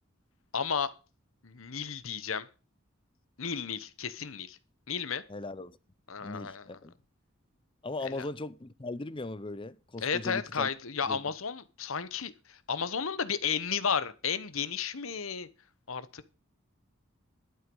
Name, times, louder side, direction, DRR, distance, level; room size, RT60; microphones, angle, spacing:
voice 1, 0.5-0.9 1.4-2.5 3.4-4.6 4.9-5.2 6.1-6.6 8.1-8.3 10.0-15.5 15.9-16.3, left 6 dB, 70° left, 1.0 m, -33 dB
voice 2, 5.3-5.8 6.2-6.9 7.8-10.7 11.1-11.2, left 2 dB, 25° left, 0.6 m, -38 dB
11.5 x 9.2 x 5.4 m
head